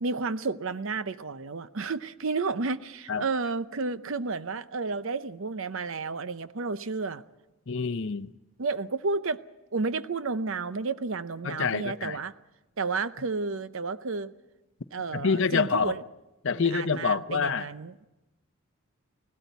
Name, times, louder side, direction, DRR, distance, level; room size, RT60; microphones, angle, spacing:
voice 1, 0.0-7.2 8.6-9.4 9.7-12.3 12.8-14.3 14.9-16.0 16.5-18.1, right 4 dB, 60° right, 0.7 m, -31 dB
voice 2, 7.7-8.3 11.4-12.2 15.1-15.9 16.4-17.7, left 5 dB, 55° left, 0.6 m, -27 dB
19.0 x 17.0 x 8.2 m
head